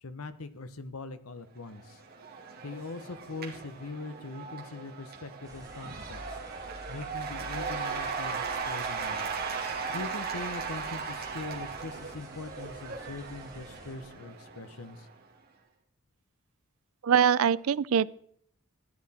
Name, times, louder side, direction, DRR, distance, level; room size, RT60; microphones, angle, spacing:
voice 1, 0.0-2.0 2.6-6.4 6.9-9.3 9.9-15.1, left 3 dB, 85° left, 11 dB, 1.0 m, -42 dB
Cheering / Applause / Crowd, 1.7-15.1, right 5 dB, 45° right, 2.3 m, -37 dB
sound 1, 5.4-14.0, equal, 15° right, 3.0 m, -49 dB
voice 2, 17.0-18.2, right 8 dB, 75° right, 20 dB, 0.4 m, -23 dB
14.0 x 11.0 x 4.3 m, 0.63 s
head